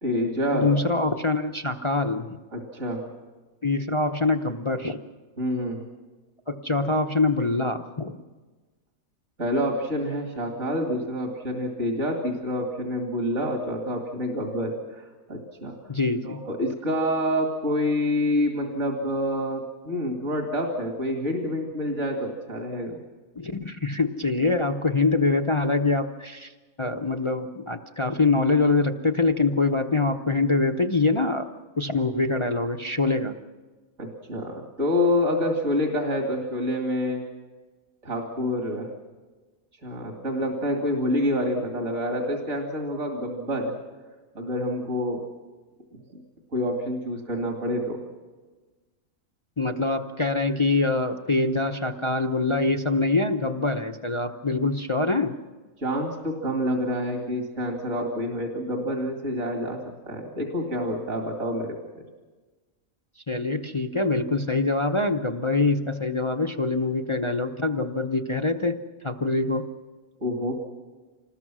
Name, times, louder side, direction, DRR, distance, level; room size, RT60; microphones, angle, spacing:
voice 1, 0.0-0.7 2.5-3.0 5.4-5.8 9.4-15.7 16.2-23.0 34.0-37.2 38.0-38.9 39.8-43.7 44.4-45.2 45.9-46.0 46.5-48.0 55.8-59.8 60.1-61.8 70.2-70.5, left 1 dB, 55° right, 2 dB, 2.7 m, -27 dB
voice 2, 0.5-2.3 3.6-5.0 6.5-8.2 15.9-16.4 23.4-26.5 26.8-31.5 31.8-33.3 49.6-55.3 63.3-68.8 69.0-69.7, left 3 dB, 30° left, 4 dB, 0.7 m, -24 dB
26.5 x 20.0 x 6.2 m, 1.3 s
omnidirectional pair, 1.4 m